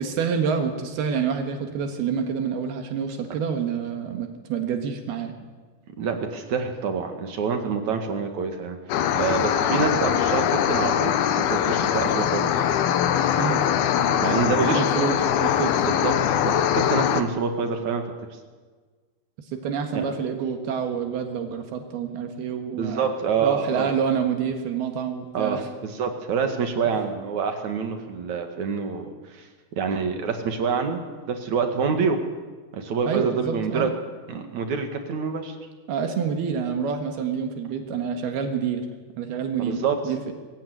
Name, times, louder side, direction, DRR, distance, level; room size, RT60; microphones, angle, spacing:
voice 1, 0.0-5.4 13.4-13.6 14.7-15.9 19.5-23.0 23.4-25.7 33.1-33.9 35.9-38.9 39.2-40.3, right 6 dB, 80° right, 5 dB, 3.6 m, -27 dB
voice 2, 6.0-8.8 9.1-11.2 11.5-12.5 14.2-14.8 15.8-16.1 16.4-18.0 19.9-20.1 22.7-23.9 25.3-29.5 29.7-32.2 32.7-33.9 34.3-35.5 39.6-40.0, right 5 dB, 55° right, 5 dB, 3.0 m, -26 dB
sound 1, 8.9-17.2, left 9 dB, 80° left, 2.9 m, -22 dB
22.5 x 15.0 x 9.4 m, 1.4 s
omnidirectional pair, 4.5 m